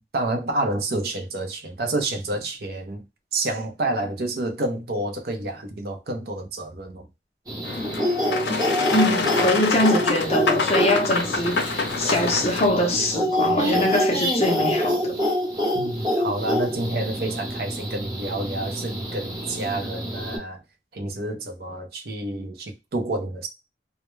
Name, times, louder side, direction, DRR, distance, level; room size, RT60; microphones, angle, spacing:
voice 1, 0.1-3.0 3.3-7.1 15.7-20.6 20.9-23.5, right 2 dB, 60° right, 0.6 m, -29 dB
sound 1, 7.5-20.4, equal, 20° right, 0.9 m, -26 dB
Boat Water vehicle, 7.6-12.7, left 4 dB, 80° left, 0.5 m, -26 dB
voice 2, 8.9-15.2, left 1 dB, 35° left, 0.5 m, -23 dB
2.2 x 2.1 x 3.0 m
head